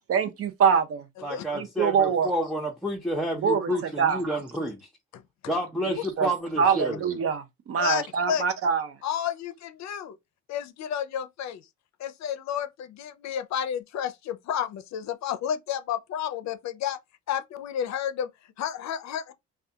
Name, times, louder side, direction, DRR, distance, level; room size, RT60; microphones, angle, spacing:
voice 1, 0.1-1.0 1.5-2.3 3.4-3.7 4.0-4.2 6.2-6.3 6.6-7.4 7.7-8.9, right 6 dB, 50° right, 0.5 m, -24 dB
voice 2, 1.2-4.8 5.5-7.1, equal, ahead, 0.6 m, -30 dB
voice 3, 7.8-8.4 9.0-10.2 10.5-11.6 12.0-17.0 17.3-18.3 18.6-19.3, left 9 dB, 65° left, 0.5 m, -31 dB
2.3 x 2.3 x 2.7 m
cardioid pair, 90°, 30 cm